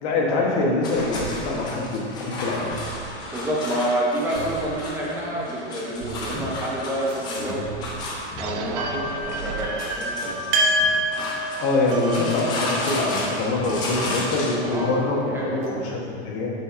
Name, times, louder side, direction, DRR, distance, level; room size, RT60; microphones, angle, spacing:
voice 1, 0.0-2.8 7.4-7.5 11.6-16.5, left 2 dB, 35° left, -2 dB, 1.1 m, -24 dB
sound 1, 0.8-14.7, left 2 dB, 15° left, 0.4 m, -33 dB
sound 2, 1.0-10.4, right 7 dB, 80° right, 0.6 m, -39 dB
voice 2, 3.3-7.6 8.4-10.4 14.7-15.8, right 1 dB, 5° right, -5 dB, 0.8 m, -28 dB
sound 3, 8.7-15.7, equal, 40° right, 0.8 m, -28 dB
7.6 x 5.7 x 2.6 m, 2.4 s
supercardioid pair, 155°, 34 cm